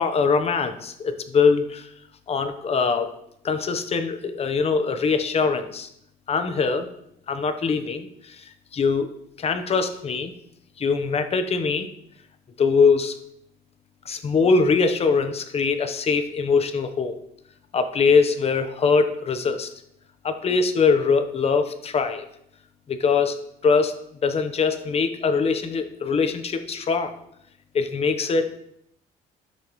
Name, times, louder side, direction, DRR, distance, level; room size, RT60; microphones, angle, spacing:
voice 1, 0.0-1.9 2.3-3.1 3.4-5.9 6.3-6.9 7.3-8.4 8.7-9.1 9.4-10.3 10.8-11.9 12.6-13.1 14.1-17.2 17.7-19.7 20.2-22.3 22.9-23.4 23.6-23.9 24.2-27.1 27.7-28.6, left 5 dB, 35° left, 9 dB, 1.0 m, -22 dB
12.5 x 6.0 x 3.1 m, 0.74 s
cardioid pair, 110°, 17 cm